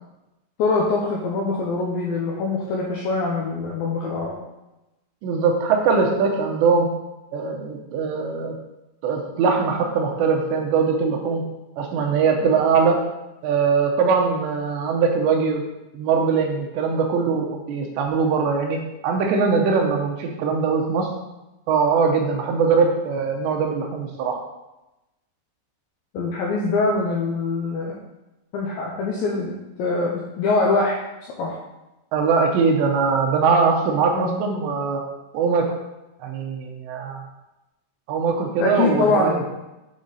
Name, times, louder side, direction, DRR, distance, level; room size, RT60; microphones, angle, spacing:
voice 1, 0.6-4.4 26.1-27.9 28.5-31.0 31.4-31.6 34.1-34.4 38.6-39.5, left 3 dB, 90° left, -2 dB, 2.0 m, -23 dB
voice 2, 5.2-6.9 7.3-8.5 9.0-11.4 11.8-13.0 13.4-15.6 15.9-18.8 19.0-21.1 21.7-24.4 32.1-35.0 35.3-35.7 36.2-37.2 38.1-39.5, right 5 dB, 80° right, 2 dB, 3.0 m, -21 dB
8.7 x 4.2 x 4.0 m, 0.98 s
omnidirectional pair, 5.2 m